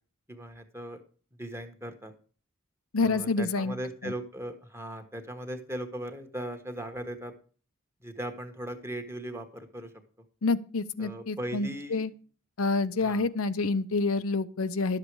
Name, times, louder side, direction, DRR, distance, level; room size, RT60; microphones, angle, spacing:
voice 1, 0.3-1.0 1.4-2.1 3.0-7.3 8.0-9.9 11.0-12.1 13.0-13.3, right 1 dB, 10° right, 6 dB, 1.4 m, -38 dB
voice 2, 2.9-3.7 4.0-4.1 10.4-12.1 12.6-15.0, left 3 dB, 85° left, 12 dB, 0.8 m, -28 dB
12.0 x 7.5 x 4.8 m, 0.41 s
head